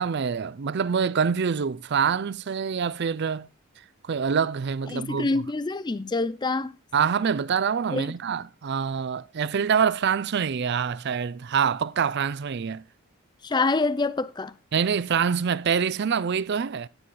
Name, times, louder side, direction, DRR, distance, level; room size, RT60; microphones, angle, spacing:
voice 1, 0.0-3.5 4.0-5.4 6.9-12.8 14.7-16.9, right 6 dB, 50° right, 0.4 m, -25 dB
voice 2, 4.9-6.7 7.9-8.1 13.4-14.5, left 3 dB, 20° left, 0.4 m, -26 dB
9.9 x 8.4 x 3.9 m
head